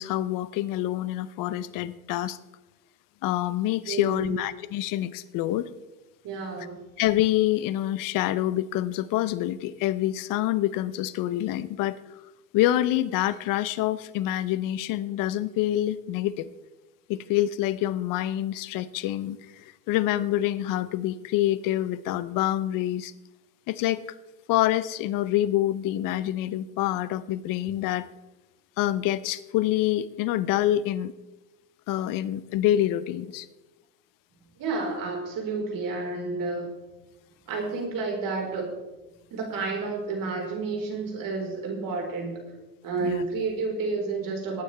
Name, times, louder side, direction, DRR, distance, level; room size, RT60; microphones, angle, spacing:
voice 1, 0.0-2.4 3.2-5.7 7.0-12.0 12.5-16.5 17.1-23.1 23.7-24.1 24.5-28.1 28.8-31.1 31.9-33.5 43.0-43.2, left 13 dB, 45° left, 17 dB, 0.8 m, -26 dB
voice 2, 3.9-4.4 6.2-6.8 34.6-36.7 37.5-38.7 39.3-42.4 42.8-44.6, right 4 dB, 45° right, 1 dB, 4.5 m, -30 dB
21.0 x 9.2 x 3.4 m, 1.1 s
hypercardioid pair, 85°, 47 cm